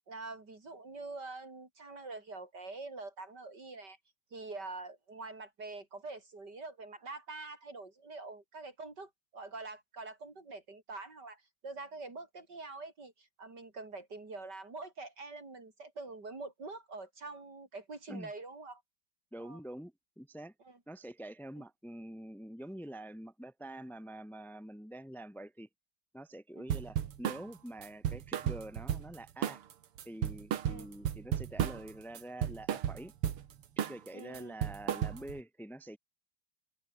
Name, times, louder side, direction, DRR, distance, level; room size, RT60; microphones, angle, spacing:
voice 1, 0.1-4.0 4.3-18.8 19.4-19.6 20.6-20.8 21.6-21.7 26.5-26.7 30.6-30.9 34.1-34.6, right 3 dB, 50° right, 4.7 m, -45 dB
voice 2, 19.3-20.5 20.9-25.7 26.1-29.6 30.1-33.1 33.8-36.0, right 1 dB, ahead, 2.2 m, -46 dB
sound 1, 26.7-27.4 27.8-29.2 29.4-29.7 30.0-31.9 32.2-33.4 33.8-34.1 34.3-35.4, right 10 dB, 90° right, 2.3 m, -33 dB
open air
omnidirectional pair, 2.4 m